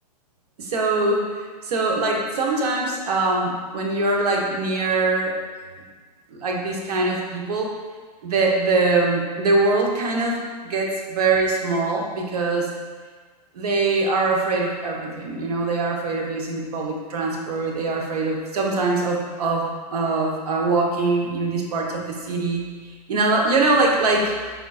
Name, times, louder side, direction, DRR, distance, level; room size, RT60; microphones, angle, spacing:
voice 1, 0.6-1.2 1.6-5.3 6.3-7.7 8.2-12.7 13.5-22.6 23.1-24.3, right 3 dB, 70° right, -1 dB, 0.9 m, -23 dB
4.9 x 3.7 x 2.3 m, 1.5 s
hypercardioid pair, 115°, 20 cm